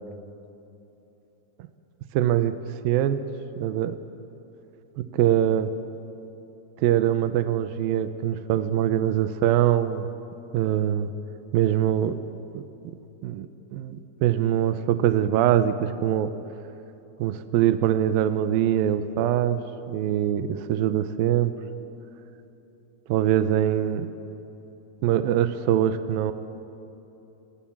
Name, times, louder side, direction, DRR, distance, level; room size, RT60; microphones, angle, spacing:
voice 1, 2.1-2.5 2.8-3.2 3.6-4.0 5.0-5.7 6.8-10.1 10.5-11.1 11.5-12.2 12.5-13.0 13.2-13.5 13.7-16.3 17.2-19.6 19.9-21.5 23.1-24.1 25.0-26.3, right 11 dB, 75° right, 11 dB, 2.5 m, -23 dB
28.5 x 22.0 x 7.3 m, 2.9 s
omnidirectional pair, 4.6 m